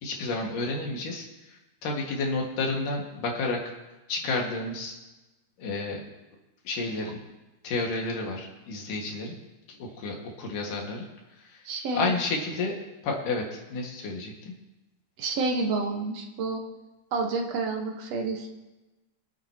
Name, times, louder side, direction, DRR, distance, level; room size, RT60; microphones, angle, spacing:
voice 1, 0.0-3.6 4.1-4.9 5.6-6.0 6.6-7.2 7.6-9.3 9.7-11.1 11.4-11.6 11.9-12.8 13.0-14.5, left 3 dB, 80° left, 0 dB, 3.4 m, -31 dB
voice 2, 11.7-12.2 15.2-16.6 17.1-18.5, right 3 dB, 60° right, 2 dB, 2.2 m, -29 dB
24.5 x 9.0 x 2.9 m, 1.1 s
omnidirectional pair, 3.7 m